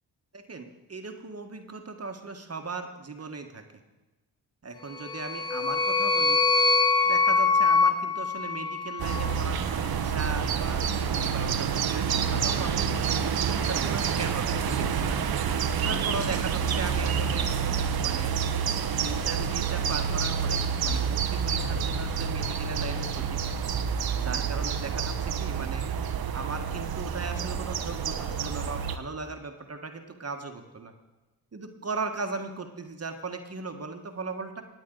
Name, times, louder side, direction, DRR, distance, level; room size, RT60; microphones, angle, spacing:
voice 1, 0.3-3.7 4.6-6.4 7.0-13.0 13.5-15.4 15.8-17.5 18.0-18.3 19.0-23.4 24.2-25.8 26.3-30.9 31.5-34.6, right 4 dB, 35° right, 5 dB, 1.5 m, -37 dB
sound 1, 4.9-9.3, left 4 dB, 10° left, 0.5 m, -24 dB
sound 2, 9.0-29.0, right 7 dB, 60° right, 1.0 m, -28 dB
19.5 x 8.7 x 3.9 m, 1.1 s
supercardioid pair, 50°, 41 cm